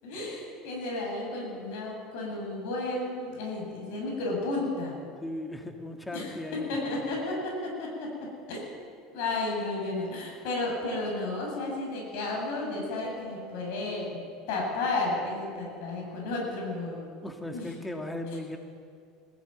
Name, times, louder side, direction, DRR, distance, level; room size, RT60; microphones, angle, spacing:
voice 1, 0.0-5.0 6.1-8.6 9.1-14.2 14.5-17.0 17.5-17.7, left 2 dB, 75° left, -1 dB, 7.7 m, -32 dB
voice 2, 5.2-6.8 17.2-18.6, left 1 dB, 5° left, 4 dB, 1.8 m, -37 dB
20.5 x 15.0 x 9.1 m, 2.2 s
supercardioid pair, 140°, 0 cm